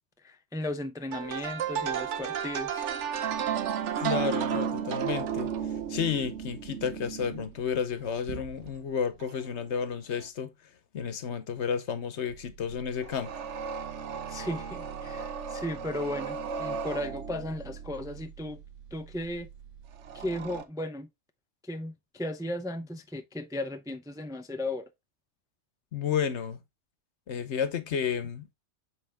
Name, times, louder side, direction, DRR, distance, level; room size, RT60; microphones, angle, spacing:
voice 1, 0.2-2.8 14.3-18.6 18.9-19.5 20.1-21.1 21.6-24.9, left 1 dB, 5° right, 0.4 m, -35 dB
sound 1, 1.1-8.8 9.2-9.5 10.2-10.3 12.3-20.6, right 8 dB, 90° right, 1.1 m, -34 dB
voice 2, 4.0-5.5 5.9-10.5 10.9-13.3 25.9-26.6 27.3-28.5, left 7 dB, 75° left, 1.2 m, -31 dB
7.9 x 4.2 x 3.5 m
omnidirectional pair, 1.2 m